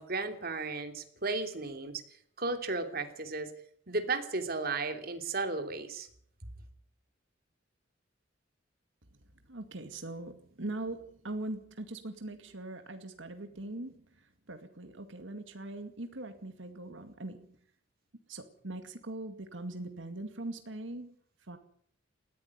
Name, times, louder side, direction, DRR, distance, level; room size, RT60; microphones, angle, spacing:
voice 1, 0.0-2.0 2.4-3.5 3.9-6.1, right 3 dB, 55° right, 7 dB, 3.0 m, -34 dB
voice 2, 9.5-14.0 14.5-17.5 18.3-21.1 21.5-21.6, right 2 dB, 85° right, 7 dB, 2.2 m, -41 dB
19.5 x 15.0 x 9.7 m, 0.62 s
head